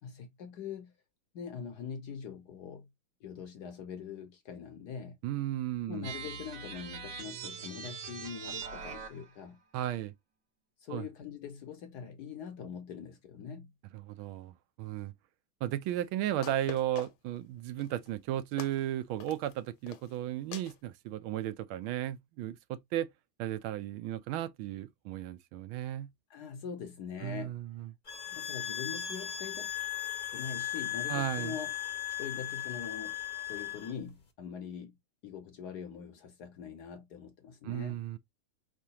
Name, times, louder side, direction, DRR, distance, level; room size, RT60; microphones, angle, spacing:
voice 1, 0.0-0.9 1.3-2.9 3.2-5.2 5.9-9.6 10.8-13.7 26.3-27.6 28.3-29.7 30.3-31.7 32.2-33.1 33.4-34.9 35.2-38.0, left 7 dB, 65° left, 1.1 m, -43 dB
voice 2, 5.2-6.1 9.7-10.1 10.9-11.1 13.9-15.1 15.6-23.1 23.4-26.1 27.2-27.9 31.1-31.6 37.6-38.2, right 12 dB, 80° right, 1.4 m, -35 dB
sound 1, 6.0-9.4, right 6 dB, 65° right, 1.6 m, -42 dB
sound 2, 15.9-16.0 16.4-17.4 17.8-18.1 18.6-18.8 19.2-19.5 19.9-20.2 20.5-20.8, left 12 dB, 80° left, 1.6 m, -44 dB
sound 3, 28.1-33.9, left 12 dB, 40° left, 0.7 m, -37 dB
4.8 x 3.8 x 2.8 m
omnidirectional pair, 2.2 m